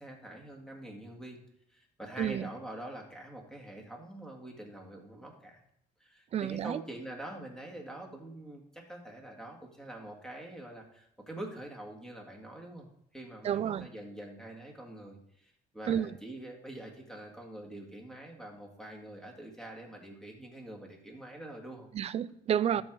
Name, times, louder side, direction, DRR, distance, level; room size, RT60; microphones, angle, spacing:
voice 1, 0.0-5.6 6.0-12.9 13.1-21.9, right 1 dB, 5° left, 2.0 m, -45 dB
voice 2, 2.2-2.5 6.3-6.8 13.4-13.9 15.9-16.1 21.9-22.8, right 9 dB, 40° right, 0.4 m, -30 dB
13.0 x 4.7 x 3.8 m
cardioid pair, 110°, 17 cm